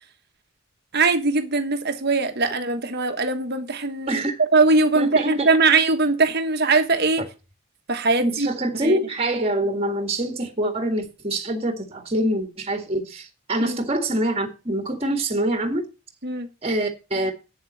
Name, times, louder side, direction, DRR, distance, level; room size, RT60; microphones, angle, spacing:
voice 1, 0.9-4.2 4.5-7.2 7.9-8.5 8.7-9.0 13.6-13.8 16.2-16.5, right 3 dB, 50° right, 1.4 m, -21 dB
voice 2, 5.0-5.5 8.2-15.9 16.6-17.3, right 1 dB, 30° right, 1.8 m, -25 dB
8.5 x 7.4 x 7.2 m
head